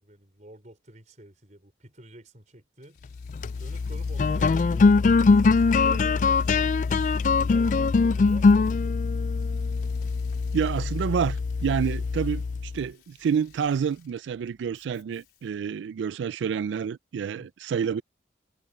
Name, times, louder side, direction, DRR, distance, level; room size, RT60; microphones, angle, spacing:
voice 1, 0.0-3.0 3.6-9.5 17.4-17.5, right 1 dB, 40° right, 5.0 m, -49 dB
Engine / Mechanisms, 2.8-15.7, left 5 dB, 60° left, 4.7 m, -60 dB
sound 1, 3.2-12.8, left 4 dB, 45° left, 0.3 m, -22 dB
voice 2, 10.5-12.4 12.7-18.0, right 7 dB, 90° right, 0.3 m, -28 dB
head